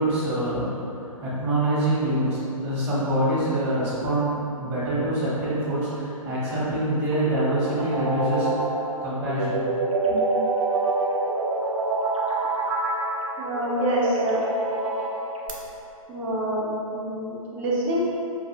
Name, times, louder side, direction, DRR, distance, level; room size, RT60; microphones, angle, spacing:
voice 1, 0.0-8.7 9.0-9.6 10.1-10.2, right 1 dB, 30° right, -10 dB, 1.0 m, -25 dB
sound 1, 7.0-15.5, right 3 dB, 65° right, 0.7 m, -26 dB
voice 2, 13.4-14.4 16.1-18.1, right 1 dB, 10° right, -6 dB, 0.3 m, -26 dB
5.1 x 2.7 x 2.7 m, 2.8 s
figure-of-eight pair, 130°, 18 cm